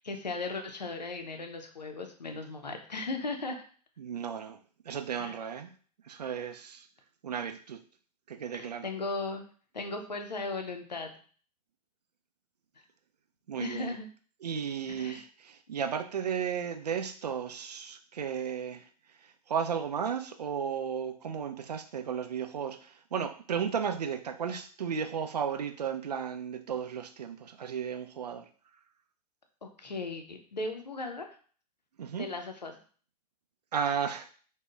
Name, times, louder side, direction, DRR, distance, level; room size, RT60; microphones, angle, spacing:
voice 1, 0.0-3.6 5.2-5.3 8.5-9.4 9.7-11.1 13.6-14.1 14.9-15.2 29.6-31.3 32.2-32.8, left 3 dB, 85° left, 5 dB, 0.5 m, -37 dB
voice 2, 4.0-4.6 4.9-5.7 6.1-6.9 7.2-7.8 8.3-8.9 13.5-14.0 14.4-18.8 19.5-28.4 32.0-32.3 33.7-34.3, right 7 dB, 75° right, 7 dB, 0.4 m, -34 dB
3.5 x 2.2 x 2.3 m, 0.43 s
figure-of-eight pair, 100°, 21 cm